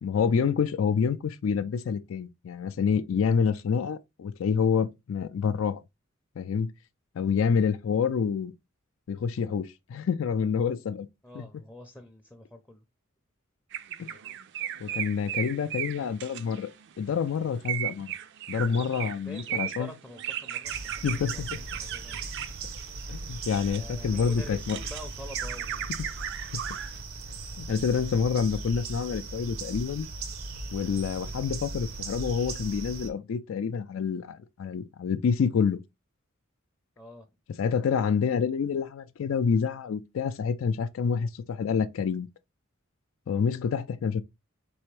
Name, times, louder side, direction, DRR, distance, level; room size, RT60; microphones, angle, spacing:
voice 1, 0.0-5.8 6.4-6.7 7.2-8.5 9.1-11.1 11.4-11.5 14.0-14.1 14.8-16.7 17.0-18.1 18.5-19.9 21.0-21.6 23.1-24.8 27.6-30.1 30.7-35.8 37.6-42.3 43.3-44.2, left 6 dB, 70° left, 0.3 m, -27 dB
voice 2, 11.2-12.8 18.6-22.3 23.7-26.0 37.0-37.3, left 1 dB, 5° left, 0.5 m, -46 dB
sound 1, 13.7-16.9 17.6-23.8 24.3-27.0, right 11 dB, 60° right, 0.4 m, -36 dB
sound 2, 20.6-33.1, right 3 dB, 85° right, 0.8 m, -38 dB
4.3 x 3.4 x 3.2 m
head